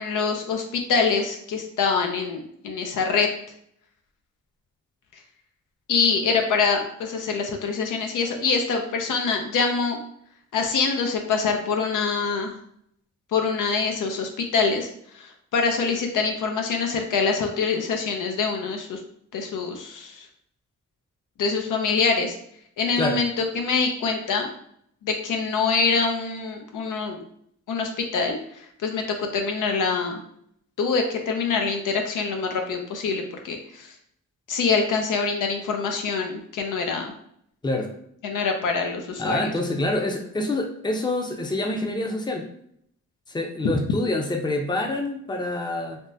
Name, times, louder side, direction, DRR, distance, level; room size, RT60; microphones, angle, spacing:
voice 1, 0.0-3.3 5.9-10.0 10.5-12.6 13.3-19.0 19.3-20.3 21.4-22.4 22.8-24.5 25.0-27.2 27.7-30.2 30.8-33.9 34.5-37.1 38.2-39.5 43.6-43.7, left 5 dB, 80° left, 3 dB, 0.6 m, -25 dB
voice 2, 39.2-42.4 43.3-46.0, left 2 dB, 15° left, 2 dB, 0.5 m, -26 dB
3.4 x 2.1 x 2.6 m, 0.69 s
cardioid pair, 70°, 31 cm